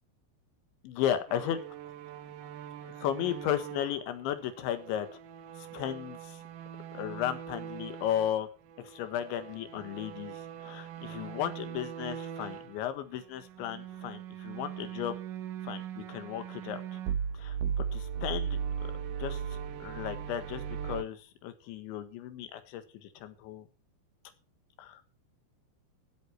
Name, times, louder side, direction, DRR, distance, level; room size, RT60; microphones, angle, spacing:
voice 1, 0.9-1.6 2.8-5.1 5.6-6.4 6.9-8.5 8.8-15.2 15.6-17.0 17.3-17.6 17.9-18.6 19.2-23.7 24.8-25.0, left 10 dB, 80° left, 10 dB, 3.8 m, -35 dB
sound 1, 1.3-8.4 8.7-12.8 13.4-21.0, right 8 dB, 75° right, 2.1 m, -39 dB
16.0 x 8.5 x 4.4 m, 0.34 s
omnidirectional pair, 5.2 m